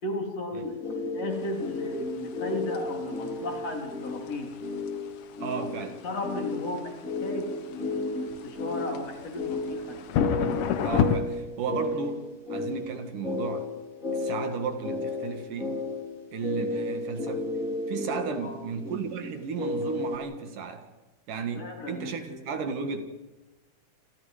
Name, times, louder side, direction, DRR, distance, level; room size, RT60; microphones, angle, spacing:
voice 1, 0.0-4.5 5.6-5.7 6.0-10.1 18.4-18.6 21.6-22.4, left 2 dB, 45° left, 2 dB, 4.9 m, -35 dB
sound 1, 0.5-20.2, left 2 dB, 20° left, 4.6 m, -34 dB
sound 2, 1.4-11.2, left 8 dB, 70° left, 2.8 m, -32 dB
voice 2, 5.4-6.0 10.8-12.2 12.5-13.7 14.1-15.8 16.3-17.5 17.9-20.9 21.3-23.0, right 5 dB, 65° right, 7 dB, 3.4 m, -34 dB
29.5 x 26.5 x 5.0 m, 1.0 s
omnidirectional pair, 4.0 m